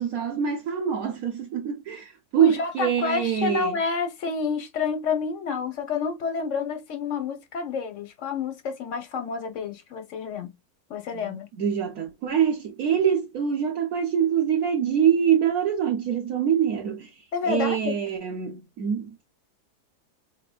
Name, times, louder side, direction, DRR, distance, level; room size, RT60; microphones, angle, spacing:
voice 1, 0.0-3.8 11.1-19.2, right 8 dB, 65° right, 1.2 m, -25 dB
voice 2, 2.4-10.5 10.9-11.5 17.3-17.9, left 5 dB, 55° left, 1.3 m, -29 dB
4.7 x 3.3 x 2.3 m
omnidirectional pair, 1.7 m